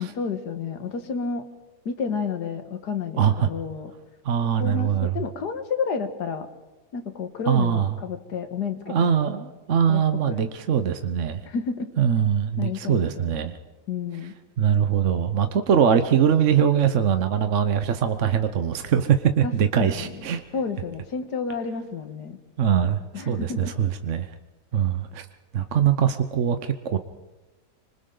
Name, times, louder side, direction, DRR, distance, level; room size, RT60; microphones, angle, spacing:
voice 1, 0.0-1.4 1.9-3.9 4.4-6.5 6.9-9.2 9.9-10.4 11.5-11.9 12.6-13.5 13.9-14.3 19.4-19.5 19.8-20.2 20.5-22.4 23.1-23.7, left 5 dB, 80° left, 8 dB, 2.1 m, -31 dB
voice 2, 3.2-3.5 4.2-5.1 7.5-8.0 8.9-11.4 12.0-13.5 14.6-20.4 22.6-24.3 24.7-25.3 25.5-27.0, right 8 dB, 55° right, 9 dB, 1.1 m, -22 dB
26.5 x 25.0 x 3.9 m, 1.1 s
omnidirectional pair, 1.8 m